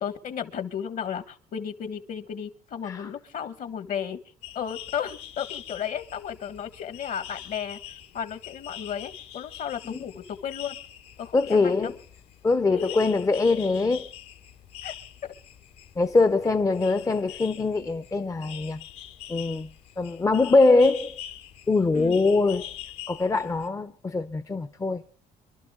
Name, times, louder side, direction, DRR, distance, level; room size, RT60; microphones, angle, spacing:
voice 1, 0.0-4.2 4.5-7.8 8.1-10.8 11.2-11.9 12.7-13.1 14.8-14.9 15.2-15.3 21.9-22.2, left 8 dB, 55° left, 1.4 m, -34 dB
sound 1, 4.4-23.7, left 11 dB, 85° left, 2.4 m, -44 dB
voice 2, 11.3-12.0 12.4-14.1 16.0-18.8 19.3-19.7 20.0-21.2 21.7-22.7 23.1-25.0, left 3 dB, 20° left, 0.6 m, -23 dB
26.5 x 12.0 x 3.7 m
cardioid pair, 110°, 17 cm